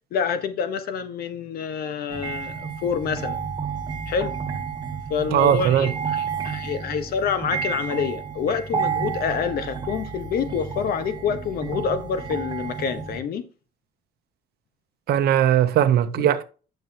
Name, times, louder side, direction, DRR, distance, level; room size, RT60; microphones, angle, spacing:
voice 1, 0.1-3.4 4.1-4.3 5.1-13.4 16.2-16.3, left 6 dB, 65° left, 1.3 m, -27 dB
sound 1, 2.1-13.2, right 6 dB, 25° right, 1.7 m, -31 dB
voice 2, 5.3-5.9 15.1-16.4, right 10 dB, 70° right, 1.0 m, -19 dB
9.3 x 6.7 x 3.0 m
cardioid pair, 110°, 17 cm